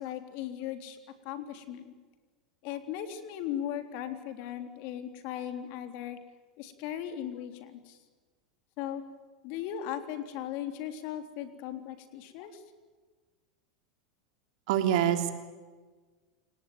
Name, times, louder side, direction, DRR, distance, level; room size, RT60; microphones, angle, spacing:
voice 1, 0.0-1.9 2.6-6.2 6.6-8.0 8.8-9.0 9.4-12.6, left 10 dB, 55° left, 8 dB, 3.6 m, -38 dB
voice 2, 14.7-15.3, right 10 dB, 65° right, 7 dB, 3.5 m, -25 dB
29.5 x 18.0 x 9.5 m, 1.4 s
hypercardioid pair, 95°, 4 cm